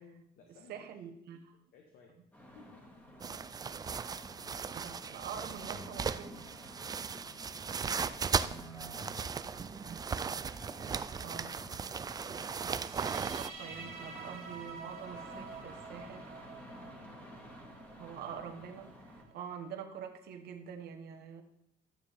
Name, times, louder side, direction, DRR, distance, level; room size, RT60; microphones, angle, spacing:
voice 1, 0.0-0.9 1.7-2.2 2.5-2.8 3.3-3.5 7.1-10.1 12.1-12.9 16.8-17.2, left 4 dB, 70° left, 1 dB, 1.4 m, -59 dB
voice 2, 0.7-1.5 4.7-6.4 11.2-11.6 12.6-12.7 13.0-16.3 18.0-21.4, right 7 dB, 70° right, 4 dB, 1.2 m, -45 dB
sound 1, 2.3-19.2, equal, 10° left, 2.1 m, -52 dB
sound 2, 3.2-13.5, right 6 dB, 25° right, 0.3 m, -37 dB
sound 3, 12.7-19.7, right 5 dB, 50° right, 2.5 m, -49 dB
11.5 x 7.0 x 3.5 m, 0.77 s
cardioid pair, 110°, 17 cm